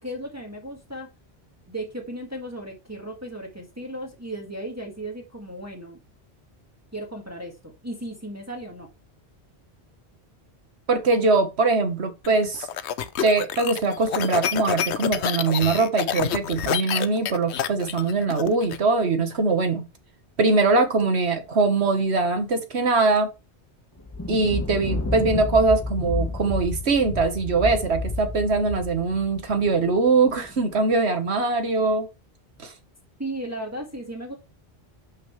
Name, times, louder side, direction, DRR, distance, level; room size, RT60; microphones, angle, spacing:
voice 1, 0.0-1.1 1.7-6.0 6.9-8.9 33.2-34.3, right 1 dB, 15° right, 1.9 m, -35 dB
voice 2, 10.9-12.7 13.2-19.9 20.4-23.3 24.3-32.1 32.6-32.7, right 3 dB, 80° right, 1.6 m, -22 dB
sound 1, 12.2-18.8, left 9 dB, 90° left, 1.0 m, -28 dB
Thunder, 24.0-30.6, left 2 dB, 15° left, 1.1 m, -31 dB
11.5 x 6.1 x 3.2 m
omnidirectional pair, 1.1 m